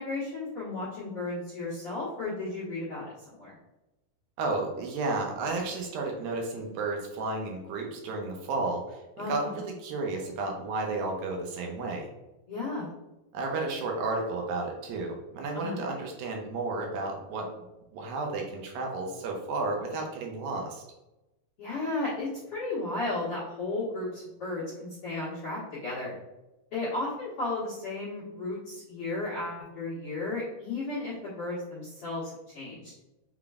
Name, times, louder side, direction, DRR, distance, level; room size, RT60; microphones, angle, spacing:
voice 1, 0.0-3.6 9.2-9.5 12.5-12.9 15.5-15.8 21.6-26.1 26.7-32.9, left 2 dB, 65° left, -10 dB, 1.4 m, -34 dB
voice 2, 4.4-12.1 13.3-17.5 17.9-20.8, right 3 dB, 75° right, 1 dB, 2.4 m, -32 dB
5.7 x 3.7 x 2.4 m, 0.97 s
omnidirectional pair, 4.3 m